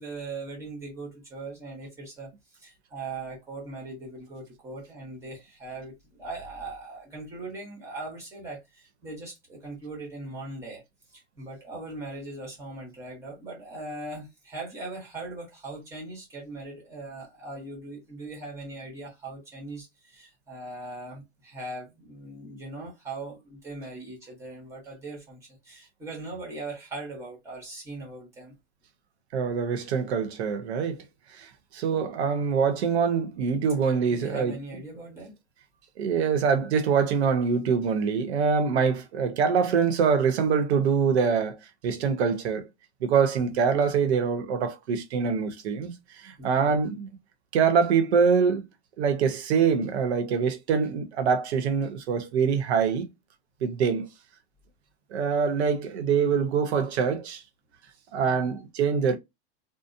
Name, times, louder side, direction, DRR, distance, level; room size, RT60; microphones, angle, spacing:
voice 1, 0.0-10.8 11.1-28.5 34.1-35.4 36.3-36.5 43.3-43.5 46.4-46.8 58.2-58.6, right 2 dB, 10° right, 1.0 m, -40 dB
voice 2, 29.3-31.0 31.3-34.6 36.0-41.6 41.8-42.7 43.0-46.0 46.2-47.1 47.5-48.6 49.0-53.1 53.6-54.1 55.1-57.4 58.1-59.2, right 6 dB, 75° right, 0.9 m, -24 dB
2.8 x 2.1 x 2.5 m
supercardioid pair, 160°, 33 cm